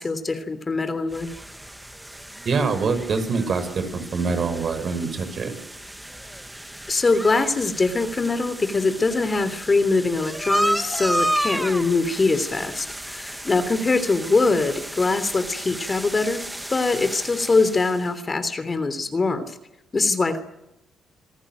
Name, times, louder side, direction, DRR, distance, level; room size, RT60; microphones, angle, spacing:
voice 1, 0.0-1.3 6.9-19.6 19.9-20.4, left 3 dB, 30° left, 12 dB, 3.0 m, -23 dB
sound 1, 1.1-18.1, right 1 dB, 5° right, 1.5 m, -32 dB
voice 2, 2.4-5.6, right 4 dB, 50° right, 9 dB, 5.9 m, -25 dB
27.5 x 17.5 x 9.2 m, 0.90 s
cardioid pair, 90°, 0 cm